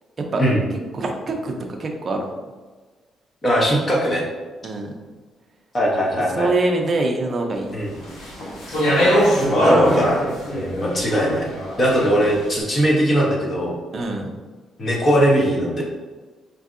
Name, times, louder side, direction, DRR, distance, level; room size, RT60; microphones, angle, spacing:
voice 1, 0.9-1.5 1.8-2.2 4.6-4.9 6.1-7.7 8.7-8.9 9.5-10.0 13.9-14.3, right 2 dB, 30° right, 2 dB, 0.5 m, -24 dB
voice 2, 3.4-4.2 5.7-6.5 7.7-7.9 9.5-10.1 10.5-11.5 11.8-13.8 14.8-15.8, equal, 25° left, -2 dB, 0.7 m, -20 dB
Speech, 8.0-12.4, equal, 85° left, 0.9 m, -21 dB
4.5 x 2.6 x 2.5 m, 1.3 s
cardioid pair, 160°, 0 cm